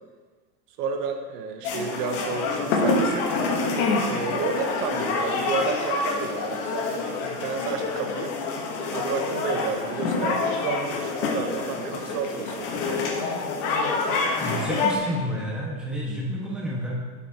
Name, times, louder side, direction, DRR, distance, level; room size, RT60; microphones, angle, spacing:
voice 1, 0.8-3.3 4.0-8.3 8.9-13.1, right 5 dB, 85° right, 5 dB, 1.0 m, -31 dB
sound 1, 1.6-15.0, left 3 dB, 60° left, 1.2 m, -27 dB
voice 2, 14.4-17.0, equal, ahead, -6 dB, 1.4 m, -30 dB
7.4 x 7.1 x 2.9 m, 1.4 s
supercardioid pair, 145°, 46 cm